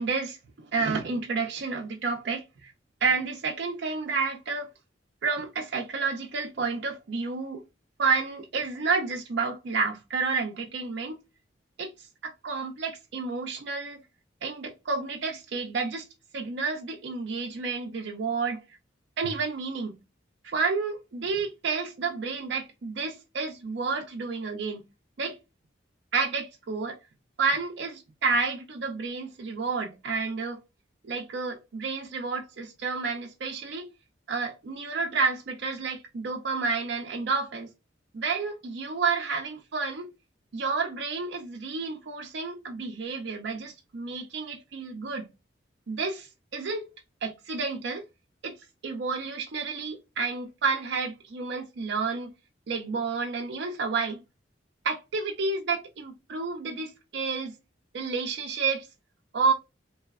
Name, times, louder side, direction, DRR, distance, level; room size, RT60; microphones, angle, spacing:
voice 1, 0.0-2.7 3.0-4.7 5.2-7.6 8.0-11.2 11.8-14.0 14.4-16.1 16.3-18.6 19.2-20.0 20.4-24.9 25.2-25.4 26.1-27.0 27.4-30.6 31.0-33.9 34.3-37.7 38.1-40.1 40.5-45.3 45.9-46.9 47.2-48.1 48.4-48.6 48.8-52.3 52.7-54.2 54.8-57.6 57.9-58.9 59.3-59.5, right 4 dB, 65° right, 0.4 m, -30 dB
2.6 x 2.0 x 2.3 m
head